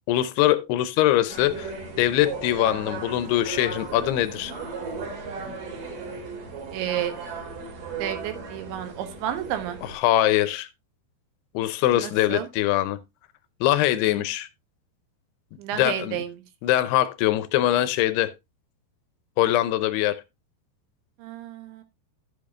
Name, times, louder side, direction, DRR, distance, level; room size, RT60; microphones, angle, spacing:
voice 1, 0.1-1.7 2.0-4.5 9.9-10.7 11.5-13.0 13.6-14.5 15.7-16.2 16.6-18.3 19.4-20.2, left 14 dB, 80° left, 2.4 m, -22 dB
sound 1, 1.3-9.9, right 4 dB, 50° right, 3.9 m, -36 dB
voice 2, 6.7-7.1 8.0-9.8 11.9-12.5 15.6-16.3 21.2-21.8, right 11 dB, 90° right, 3.6 m, -31 dB
12.0 x 8.4 x 2.4 m
omnidirectional pair, 5.1 m